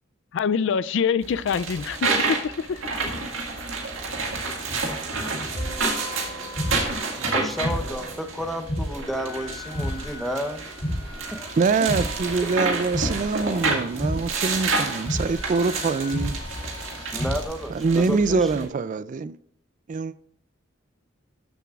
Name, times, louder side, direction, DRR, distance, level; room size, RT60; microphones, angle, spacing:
voice 1, 0.3-2.9, left 6 dB, 65° left, 0.4 m, -25 dB
sound 1, 1.2-18.6, right 3 dB, 85° right, 1.8 m, -30 dB
sound 2, 5.5-17.4, equal, 35° left, 2.5 m, -33 dB
voice 2, 7.3-10.7 11.3-11.5 17.1-18.6, equal, ahead, 0.8 m, -31 dB
voice 3, 11.6-16.4 17.7-19.4 19.9-20.1, right 4 dB, 40° right, 0.3 m, -24 dB
13.0 x 7.0 x 2.4 m
head